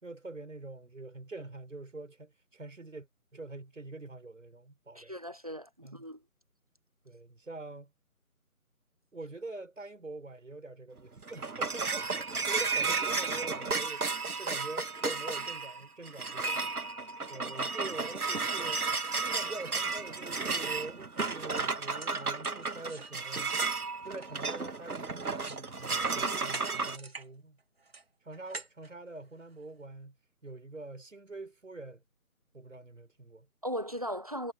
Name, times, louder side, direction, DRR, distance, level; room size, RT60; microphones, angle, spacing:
voice 1, 0.0-3.1 3.3-5.1 5.8-6.0 7.0-7.9 9.1-16.6 17.3-18.8 19.2-23.5 24.0-27.6 28.2-30.1 30.4-32.0 32.5-33.5, right 2 dB, 60° right, 5.6 m, -45 dB
voice 2, 4.9-6.2 33.6-34.5, equal, 25° right, 1.1 m, -37 dB
sound 1, 11.0-27.0, right 4 dB, 75° right, 2.0 m, -33 dB
Metal Rumble, 21.8-25.7 26.0-27.3 27.6-29.7, right 3 dB, 40° right, 3.1 m, -48 dB
figure-of-eight pair, 175°, 44 cm